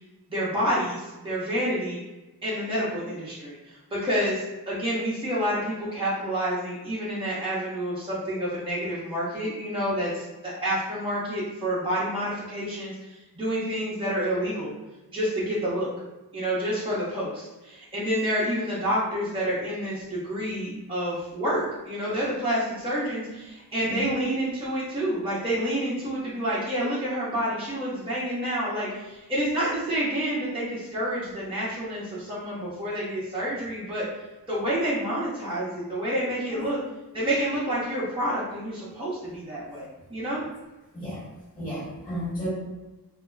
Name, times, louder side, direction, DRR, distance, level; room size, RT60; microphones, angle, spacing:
voice 1, 0.3-2.0 2.4-14.7 15.1-15.9 16.3-34.0 34.5-36.8 37.1-40.4, equal, 15° right, -9 dB, 0.7 m, -28 dB
voice 2, 40.9-41.2 41.5-42.5, equal, 20° left, -9 dB, 1.1 m, -33 dB
2.3 x 2.1 x 3.2 m, 1.1 s
wide cardioid pair, 110°, 37 cm